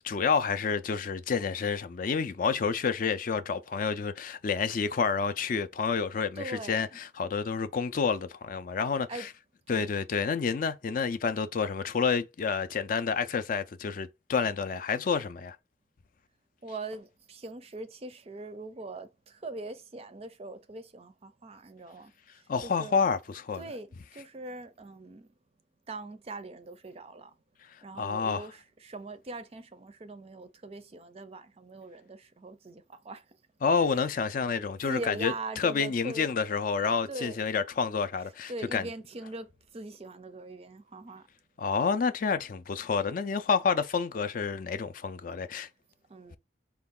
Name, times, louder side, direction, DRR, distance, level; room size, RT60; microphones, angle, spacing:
voice 1, 0.0-9.3 9.7-15.6 22.5-23.6 28.0-28.4 33.6-38.9 41.6-45.7, left 5 dB, 45° left, 0.4 m, -29 dB
voice 2, 6.4-7.0 9.1-9.3 9.7-9.9 16.6-23.0 23.5-25.3 25.9-27.3 27.8-33.3 34.9-36.3 37.1-37.4 38.5-41.3 46.1-46.4, right 2 dB, 30° right, 0.4 m, -42 dB
4.5 x 2.3 x 3.6 m
head